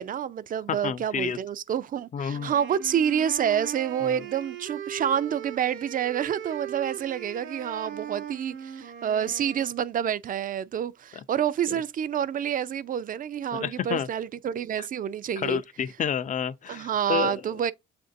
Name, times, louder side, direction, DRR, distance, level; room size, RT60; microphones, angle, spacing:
voice 1, 0.0-15.6 16.7-17.7, right 9 dB, 45° right, 0.4 m, -28 dB
voice 2, 0.8-1.4 2.1-2.5 4.0-4.2 11.7-11.8 13.5-14.1 14.8-14.9 15.4-17.6, left 8 dB, 40° left, 0.5 m, -30 dB
sound 1, 2.3-9.8, right 8 dB, 80° right, 0.8 m, -39 dB
7.6 x 2.6 x 2.6 m
cardioid pair, 90°, 20 cm